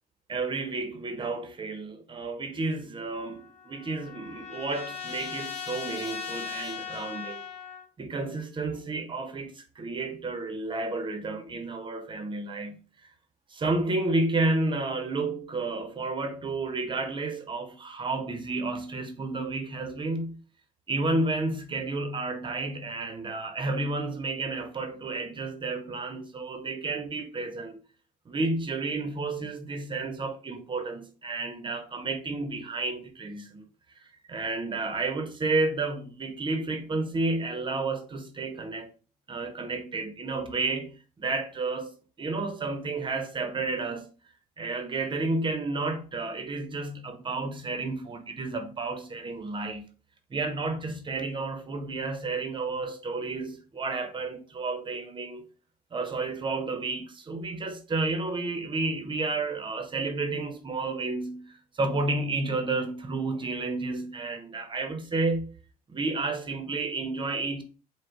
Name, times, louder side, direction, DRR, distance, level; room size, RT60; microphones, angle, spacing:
voice 1, 0.3-7.4 8.0-12.8 13.5-20.4 20.9-27.8 28.3-33.6 34.3-38.9 39.3-44.1 44.6-49.9 50.3-55.5 55.9-65.5 65.9-67.6, right 3 dB, 30° right, 0.7 m, -31 dB
Trumpet, 3.1-7.8, left 7 dB, 40° left, 0.9 m, -38 dB
4.8 x 2.1 x 3.7 m
cardioid pair, 110°, 17 cm